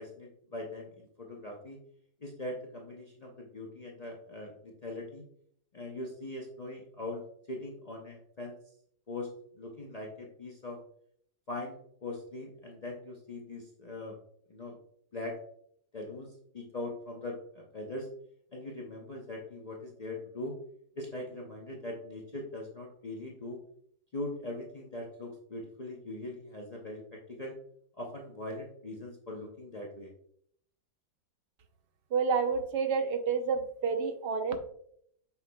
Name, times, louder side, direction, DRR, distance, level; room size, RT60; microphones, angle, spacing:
voice 1, 0.0-1.8 2.2-5.2 5.7-8.6 9.1-9.3 9.6-10.8 11.5-14.2 14.5-14.8 15.1-15.4 15.9-18.1 18.5-20.5 21.0-23.6 24.1-27.6 28.0-30.1, left 2 dB, 75° left, -1 dB, 0.3 m, -41 dB
voice 2, 32.1-34.6, right 5 dB, 60° right, 6 dB, 0.5 m, -29 dB
8.1 x 5.7 x 2.3 m, 0.68 s
omnidirectional pair, 2.0 m